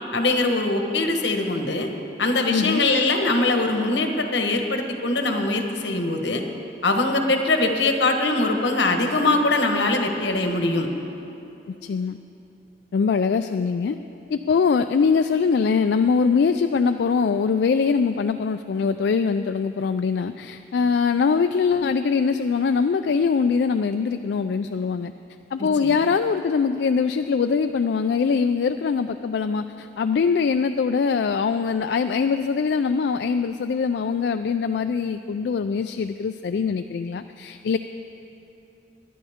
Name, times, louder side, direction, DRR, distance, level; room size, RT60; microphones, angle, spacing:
voice 1, 0.1-1.9 2.2-6.4 6.8-10.9 25.6-26.0, left 2 dB, 85° left, 4 dB, 1.3 m, -22 dB
voice 2, 2.5-2.8 11.7-12.2 12.9-14.0 14.3-25.1 25.5-37.8, left 5 dB, 70° left, 8 dB, 0.3 m, -22 dB
22.5 x 10.5 x 3.6 m, 3.0 s
head